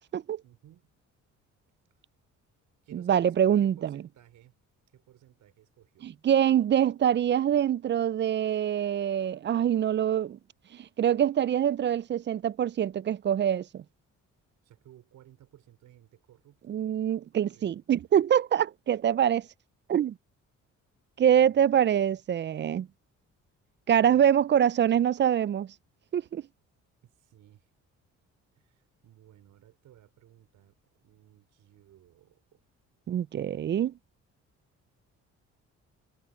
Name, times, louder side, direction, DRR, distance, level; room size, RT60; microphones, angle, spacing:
voice 1, 0.4-0.9 2.8-4.6 4.9-6.1 14.6-16.6 17.4-17.8 21.2-21.9 24.0-24.3 27.0-27.7 28.6-32.6, right 12 dB, 80° right, 4.7 m, -57 dB
voice 2, 2.9-4.0 6.0-10.4 10.7-13.8 16.7-19.5 19.9-20.1 21.2-22.9 23.9-25.7 26.1-26.4 33.1-33.9, right 9 dB, 40° right, 0.4 m, -25 dB
cardioid pair, 90°, 30 cm